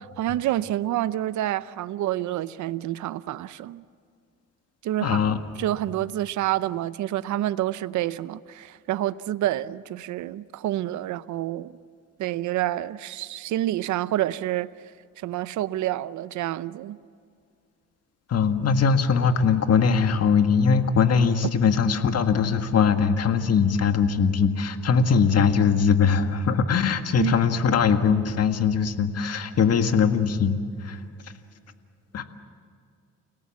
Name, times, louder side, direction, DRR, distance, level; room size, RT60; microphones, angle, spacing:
voice 1, 0.0-3.8 4.8-5.2 5.6-11.8 12.2-14.7 15.2-17.0 27.2-27.4, right 14 dB, 75° right, 0.7 m, -28 dB
voice 2, 5.0-5.4 18.3-31.0 32.1-32.2, left 6 dB, 55° left, 1.8 m, -21 dB
30.0 x 18.0 x 7.5 m
cardioid pair, 90°, 30 cm